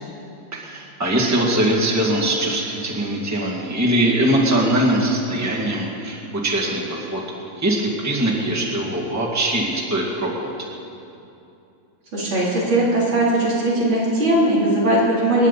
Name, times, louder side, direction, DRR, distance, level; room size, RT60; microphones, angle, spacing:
voice 1, 0.5-10.5, right 1 dB, 10° right, -4 dB, 2.0 m, -22 dB
voice 2, 12.1-15.5, right 1 dB, 80° right, -6 dB, 4.4 m, -19 dB
27.0 x 10.5 x 4.2 m, 2.7 s
omnidirectional pair, 2.1 m